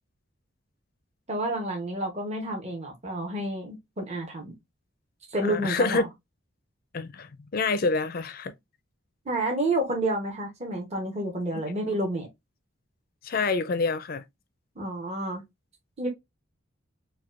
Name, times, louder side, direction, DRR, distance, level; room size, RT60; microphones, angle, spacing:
voice 1, 1.3-4.5 5.3-6.1 9.2-12.3 14.8-15.4 16.0-16.1, right 1 dB, 30° right, 0.9 m, -29 dB
voice 2, 5.4-6.0 6.9-8.5 13.2-14.2, left 3 dB, 45° left, 0.4 m, -27 dB
4.4 x 2.2 x 2.4 m
head